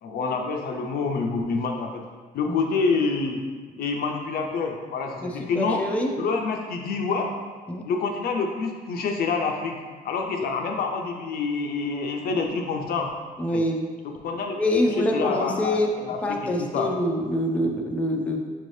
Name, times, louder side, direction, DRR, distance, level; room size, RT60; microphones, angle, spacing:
voice 1, 0.0-2.0 2.3-3.4 3.8-5.8 6.2-7.3 7.9-9.7 10.0-13.1 13.5-13.6 14.0-14.6 15.1-16.9, left 4 dB, 70° left, 2 dB, 0.5 m, -27 dB
voice 2, 5.2-6.1 7.7-7.8 10.4-10.5 13.4-13.9 14.6-15.9 16.2-18.4, left 1 dB, 10° left, 0 dB, 0.4 m, -25 dB
5.7 x 2.7 x 3.2 m, 1.5 s
cardioid pair, 125°, 16 cm